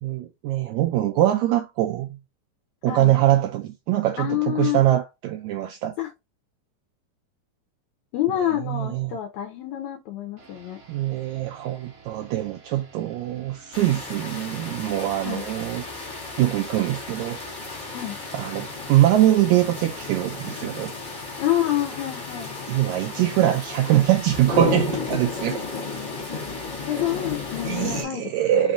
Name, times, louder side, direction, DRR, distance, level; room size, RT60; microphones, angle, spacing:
voice 1, 0.0-2.2 2.8-5.9 8.7-9.1 10.9-15.8 16.4-17.4 18.3-20.9 22.7-25.9 27.7-28.7, right 13 dB, 85° right, 1.6 m, -23 dB
voice 2, 4.2-4.8 6.0-6.1 8.1-10.8 15.2-15.5 17.9-18.2 21.4-22.6 25.3-25.6 26.9-28.7, left 12 dB, 75° left, 1.9 m, -27 dB
sound 1, 10.4-25.2, right 2 dB, 50° right, 1.9 m, -52 dB
sound 2, 13.7-28.0, left 4 dB, 20° left, 0.5 m, -33 dB
5.4 x 2.5 x 3.7 m
omnidirectional pair, 3.8 m